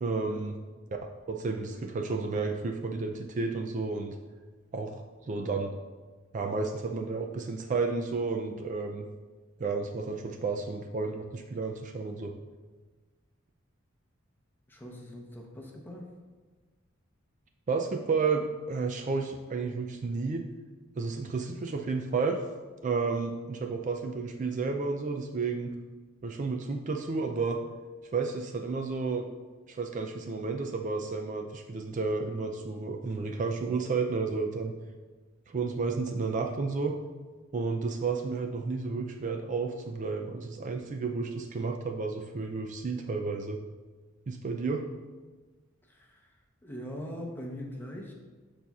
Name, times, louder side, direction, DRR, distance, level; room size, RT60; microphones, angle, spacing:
voice 1, 0.0-0.6 1.3-4.2 4.7-5.7 6.3-9.1 9.6-12.4 17.7-20.4 21.0-22.4 22.8-25.7 26.2-27.6 28.1-29.3 29.7-34.7 35.5-37.0 37.5-43.6 44.3-44.8, right 4 dB, 40° right, 4 dB, 0.4 m, -31 dB
voice 2, 14.7-16.1 45.8-48.1, equal, 10° left, -1 dB, 0.8 m, -42 dB
12.0 x 4.2 x 2.4 m, 1.4 s
head